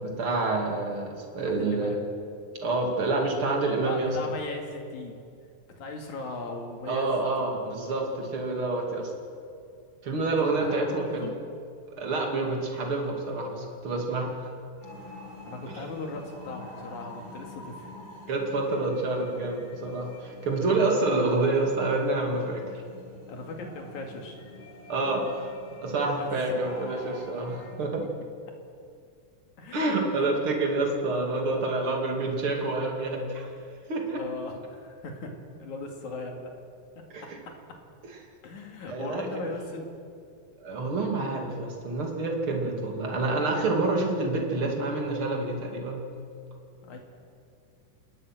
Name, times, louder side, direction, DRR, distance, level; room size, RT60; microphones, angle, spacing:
voice 1, 0.0-1.9 2.6-4.2 6.9-9.1 10.0-11.2 12.0-14.5 15.7-15.9 18.3-22.8 24.9-28.0 29.7-33.5 33.9-34.2 37.1-37.4 38.9-39.3 40.6-46.1, right 2 dB, 40° right, 1 dB, 3.3 m, -28 dB
voice 2, 1.5-2.0 3.8-5.2 5.8-7.5 10.4-11.4 15.4-17.9 23.3-24.4 26.2-26.6 29.6-30.3 34.2-36.5 37.0-37.6 38.4-39.9 46.8-47.0, left 3 dB, 65° left, 3 dB, 3.6 m, -38 dB
sound 1, 14.8-27.7, left 2 dB, 35° left, 5.2 m, -47 dB
26.5 x 20.0 x 6.2 m, 2.5 s
omnidirectional pair, 3.8 m